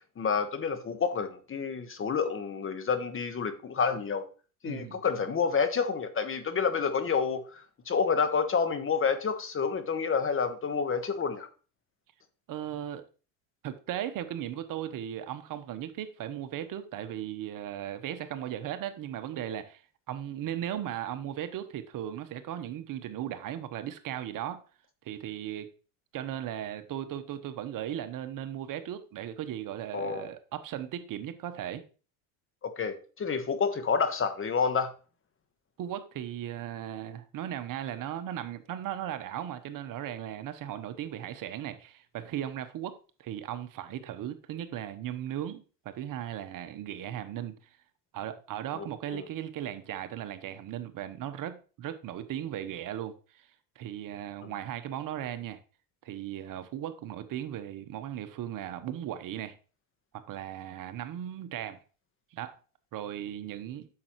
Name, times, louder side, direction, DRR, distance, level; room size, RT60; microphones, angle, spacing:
voice 1, 0.2-4.3 4.6-11.5 29.9-30.3 32.6-34.9 48.8-48.9 49.1-49.2, left 5 dB, 30° left, 1.2 m, -29 dB
voice 2, 4.6-5.0 12.5-13.0 13.6-19.8 20.1-24.6 25.0-25.7 26.1-31.8 35.8-47.6 48.1-53.5 53.8-55.6 56.0-59.6 60.3-61.8 62.3-62.5 62.9-63.9, right 11 dB, 50° right, 1.0 m, -37 dB
8.5 x 6.7 x 3.1 m
supercardioid pair, 95°, 43 cm